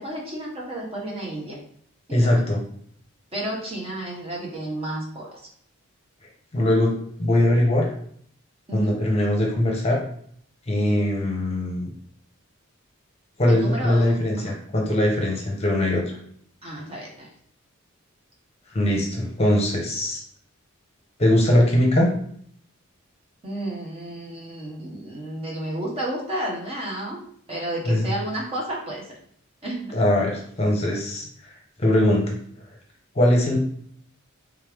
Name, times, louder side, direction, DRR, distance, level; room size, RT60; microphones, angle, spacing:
voice 1, 0.0-1.6 2.1-2.4 3.3-5.4 8.7-9.0 13.5-14.6 16.6-17.3 23.4-27.2 27.5-29.0 29.6-30.0, right 1 dB, 25° right, -3 dB, 1.0 m, -32 dB
voice 2, 2.1-2.6 6.5-6.9 7.2-7.9 8.7-10.0 10.7-11.9 13.4-16.2 18.7-20.2 21.2-22.1 27.8-28.1 29.9-31.3 31.8-32.4 33.1-33.6, left 1 dB, 30° left, -1 dB, 0.8 m, -21 dB
3.5 x 3.2 x 3.4 m, 0.62 s
head